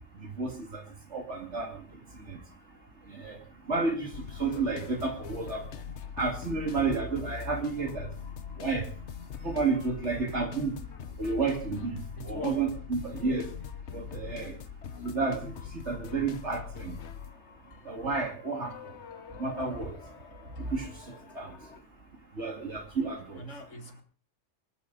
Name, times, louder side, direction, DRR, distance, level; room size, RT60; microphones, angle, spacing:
voice 1, 0.2-0.8 1.1-2.4 3.1-3.4 3.7-5.7 6.2-8.1 8.6-8.9 9.4-10.7 11.2-13.5 13.9-14.5 15.0-17.0 17.8-18.9 19.4-19.9 20.6-21.5 22.3-23.4, right 4 dB, 70° right, 2.8 m, -31 dB
sound 1, 4.1-21.8, left 7 dB, 70° left, 1.2 m, -43 dB
voice 2, 12.2-12.5 13.2-13.4 23.3-24.0, left 1 dB, 85° left, 2.3 m, -40 dB
22.5 x 12.5 x 4.0 m
omnidirectional pair, 1.2 m